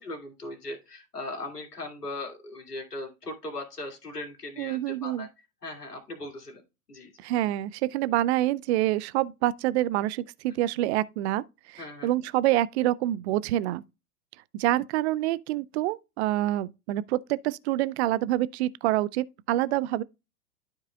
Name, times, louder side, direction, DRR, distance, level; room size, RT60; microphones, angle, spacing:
voice 1, 0.0-5.3 5.6-6.6 6.9-7.1 11.8-12.1, left 2 dB, 90° left, 2.3 m, -38 dB
voice 2, 4.6-5.3 7.2-11.4 11.7-13.8 14.5-20.0, right 15 dB, 45° right, 0.5 m, -27 dB
12.0 x 4.7 x 2.2 m
hypercardioid pair, 95°, 46 cm